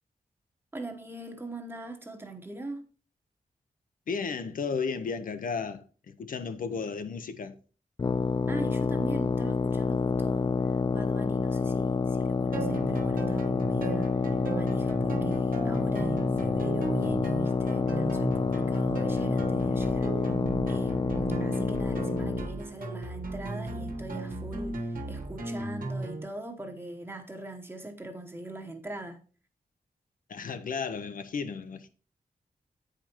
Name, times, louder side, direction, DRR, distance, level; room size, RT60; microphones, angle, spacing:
voice 1, 0.7-2.9 8.5-20.1 20.6-29.2, right 2 dB, 15° right, 1.1 m, -42 dB
voice 2, 4.1-7.5 30.3-31.9, left 5 dB, 70° left, 0.7 m, -34 dB
sound 1, 8.0-22.5, left 5 dB, 30° left, 0.4 m, -28 dB
sound 2, 12.5-26.2, right 3 dB, 75° right, 1.5 m, -36 dB
sound 3, 14.8-21.4, right 2 dB, 55° right, 1.5 m, -45 dB
8.8 x 5.1 x 4.4 m
wide cardioid pair, 160°, 14 cm